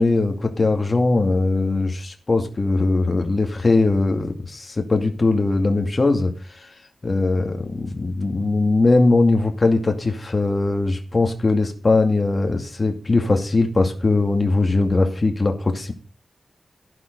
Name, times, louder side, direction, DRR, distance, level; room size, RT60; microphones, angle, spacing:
voice 1, 0.0-6.3 7.0-15.9, left 3 dB, 35° left, 4 dB, 2.3 m, -20 dB
12.0 x 11.5 x 5.4 m, 0.36 s
wide cardioid pair, 85°, 0 cm